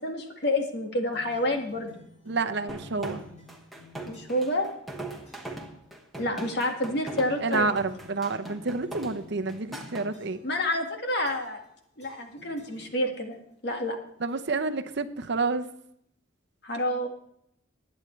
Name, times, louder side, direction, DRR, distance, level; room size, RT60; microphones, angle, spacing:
voice 1, 0.0-1.9 4.0-4.7 6.2-7.7 10.4-11.6 12.0-13.4 13.6-14.0 16.6-17.1, left 1 dB, 55° left, 3 dB, 1.9 m, -28 dB
sound 1, 1.1-4.6 5.2-5.7 6.4-6.8 7.1-10.6 11.2-11.7 12.0-13.3, left 2 dB, 35° left, 5.5 m, -53 dB
voice 2, 2.3-3.2 7.4-10.4 14.2-15.7, right 3 dB, 55° right, 8 dB, 0.7 m, -29 dB
sound 2, 2.7-10.1, right 2 dB, ahead, 1.3 m, -40 dB
20.5 x 8.9 x 3.2 m, 0.71 s
head